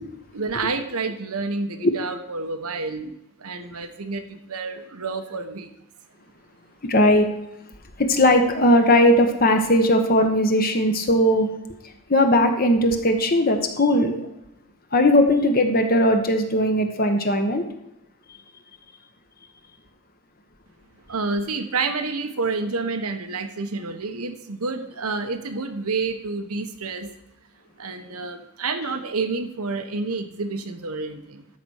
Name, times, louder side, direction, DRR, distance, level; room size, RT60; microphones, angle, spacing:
voice 1, 0.3-5.7 21.1-27.1 27.8-31.5, right 3 dB, 80° right, 8 dB, 1.1 m, -29 dB
voice 2, 6.8-7.3 8.0-11.5 12.1-14.3 14.9-17.6, left 1 dB, 40° left, 5 dB, 1.0 m, -18 dB
12.5 x 4.3 x 6.4 m, 0.87 s
head